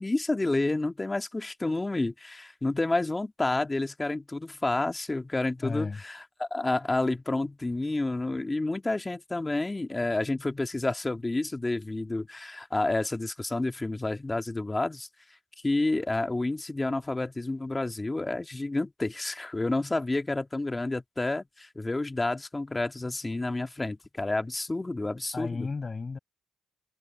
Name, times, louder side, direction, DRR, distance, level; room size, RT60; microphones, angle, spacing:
voice 1, 0.0-15.1 15.6-25.7, left 2 dB, 20° left, 1.9 m, -29 dB
voice 2, 5.6-6.0 25.3-26.2, left 4 dB, 35° left, 7.9 m, -33 dB
cardioid pair, 70°, 0 cm